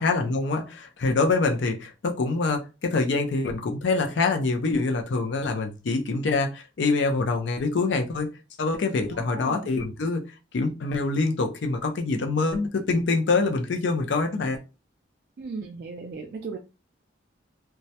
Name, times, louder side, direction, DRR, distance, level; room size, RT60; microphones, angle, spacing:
voice 1, 0.0-8.3 8.6-10.2 10.5-14.6, left 3 dB, 70° left, 0.4 m, -25 dB
voice 2, 9.1-9.8 15.4-16.6, right 4 dB, 55° right, 0.3 m, -36 dB
2.2 x 2.0 x 2.7 m
head